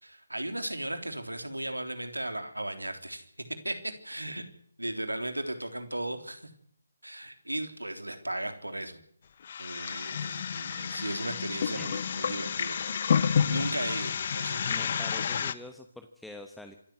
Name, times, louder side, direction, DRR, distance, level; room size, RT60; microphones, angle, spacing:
voice 1, 0.0-3.3 3.6-4.4 4.8-6.5 7.0-9.0 9.6-12.8 13.5-14.6, right 1 dB, 85° right, 7 dB, 3.5 m, -36 dB
sound 1, 9.4-15.5, left 7 dB, 45° left, 1.2 m, -30 dB
voice 2, 14.7-16.7, left 2 dB, ahead, 5 dB, 1.1 m, -46 dB
26.5 x 13.0 x 9.6 m, 0.64 s
figure-of-eight pair, 145°, 0 cm